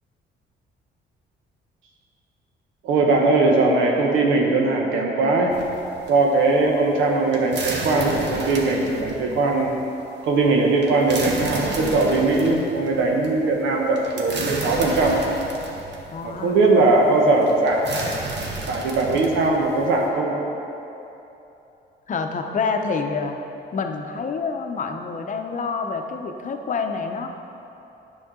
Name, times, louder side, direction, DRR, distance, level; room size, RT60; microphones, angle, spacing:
voice 1, 2.8-5.6 6.1-9.8 10.2-15.3 16.2-17.9 18.7-20.5, right 3 dB, 85° right, 0 dB, 0.9 m, -20 dB
sound 1, 5.5-20.0, right 3 dB, 60° right, 1.2 m, -33 dB
voice 2, 16.1-16.6 22.1-23.4 23.7-27.3, left 4 dB, 40° left, 5 dB, 0.7 m, -27 dB
9.2 x 6.4 x 3.7 m, 2.9 s
cardioid pair, 90°, 20 cm